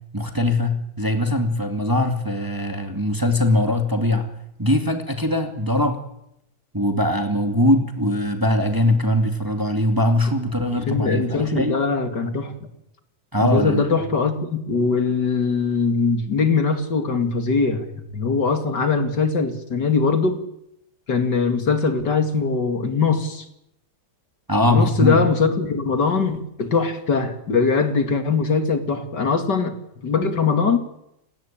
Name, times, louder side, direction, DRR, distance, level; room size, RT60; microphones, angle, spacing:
voice 1, 0.1-4.3 4.6-6.0 6.7-11.8 13.3-13.9 24.5-25.2, left 1 dB, 10° right, 2.2 m, -21 dB
voice 2, 10.7-12.5 13.4-20.4 21.1-23.5 24.6-29.8 30.0-30.8, left 4 dB, 60° left, 2.9 m, -21 dB
30.0 x 18.0 x 8.9 m
omnidirectional pair, 2.1 m